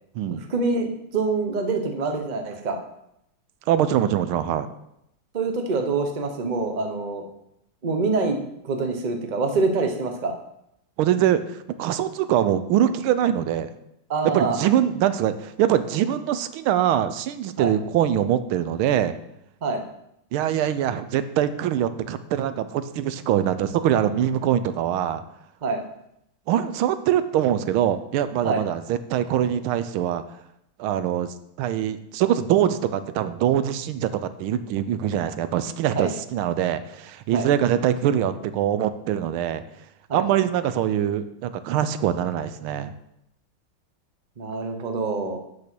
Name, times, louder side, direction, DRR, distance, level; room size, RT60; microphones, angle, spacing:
voice 1, 0.3-2.8 5.3-7.2 7.8-8.4 8.6-10.3 14.1-14.6 17.6-17.7 19.6-19.8 25.6-25.8 28.4-28.6 35.9-36.1 37.3-37.5 40.1-40.2 44.4-45.4, right 3 dB, 65° right, 5 dB, 0.4 m, -25 dB
voice 2, 3.7-4.7 11.0-13.7 14.2-19.1 20.3-25.2 26.5-30.2 30.8-39.6 40.1-42.9, right 10 dB, 80° right, 12 dB, 1.4 m, -23 dB
8.3 x 5.2 x 6.1 m, 0.80 s
omnidirectional pair, 2.3 m